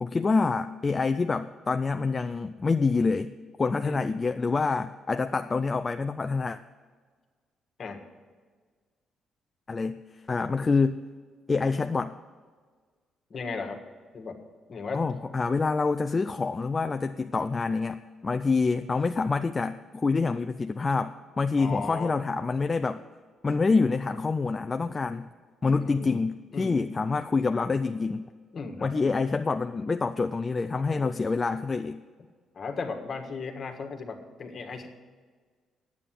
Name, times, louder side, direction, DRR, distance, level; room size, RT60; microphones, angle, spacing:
voice 1, 0.0-3.3 3.6-6.6 9.7-11.0 11.5-12.1 14.9-23.0 23.4-25.3 25.6-28.3 28.8-32.0, left 4 dB, 30° left, 8 dB, 0.4 m, -26 dB
voice 2, 13.3-13.8 14.1-14.4 14.7-15.0 21.6-22.2 25.8-26.2 26.5-26.9 28.5-28.9 30.8-31.1 32.5-34.9, left 4 dB, 50° left, 5 dB, 1.6 m, -36 dB
9.6 x 8.3 x 7.5 m, 1.5 s
cardioid pair, 90°, 0 cm